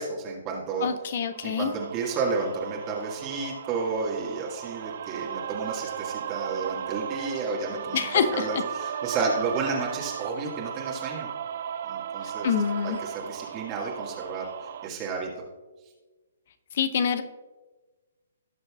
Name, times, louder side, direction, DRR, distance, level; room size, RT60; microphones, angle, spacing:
voice 1, 0.0-0.9 1.4-8.1 8.3-11.3 11.8-12.5 12.8-14.5 14.8-15.3, right 4 dB, 25° right, -2 dB, 1.8 m, -31 dB
voice 2, 0.8-1.7 7.9-8.6 12.4-13.0 16.7-17.2, left 7 dB, 50° left, 11 dB, 0.8 m, -26 dB
sound 1, 1.3-14.9, right 8 dB, 50° right, 0.4 m, -36 dB
18.0 x 6.5 x 2.4 m, 1.2 s
figure-of-eight pair, 130°, 0 cm